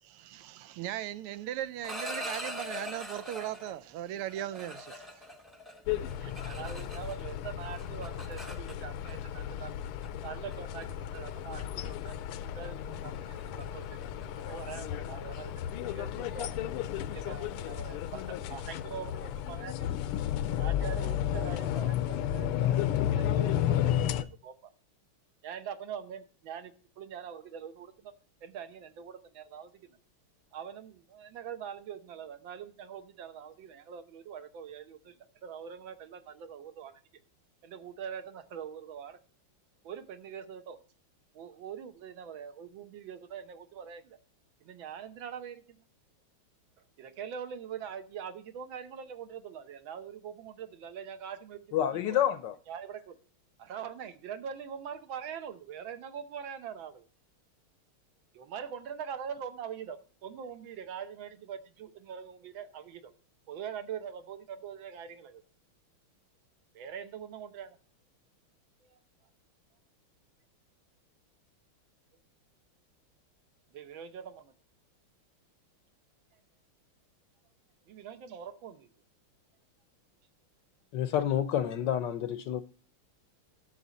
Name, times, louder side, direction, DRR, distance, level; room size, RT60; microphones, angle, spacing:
voice 1, 0.0-5.3, right 12 dB, 85° right, 1.6 m, -38 dB
sound 1, 1.6-3.8 4.3-7.3 7.6-9.1 10.0-10.2 10.5-10.8 11.3-11.5 11.9-12.1 12.4-12.7 12.9-18.3, left 1 dB, ahead, 0.7 m, -43 dB
sound 2, 5.9-24.2, left 11 dB, 90° left, 1.6 m, -33 dB
voice 2, 5.9-9.7 10.2-12.1 12.4-16.5 17.1-19.7 20.6-22.8 23.2-24.7 25.4-28.1 28.4-29.7 30.5-35.1 35.4-36.9 37.6-39.2 39.8-40.8 41.3-44.2 44.6-45.8 47.0-52.2 52.7-53.2 53.6-57.1 58.3-63.1 63.5-65.4 66.7-67.8 68.8-69.0 73.7-74.5 77.9-78.9, right 8 dB, 70° right, 1.6 m, -43 dB
voice 3, 51.7-52.5 80.9-82.6, left 10 dB, 70° left, 1.1 m, -28 dB
11.0 x 7.2 x 4.1 m
omnidirectional pair, 2.4 m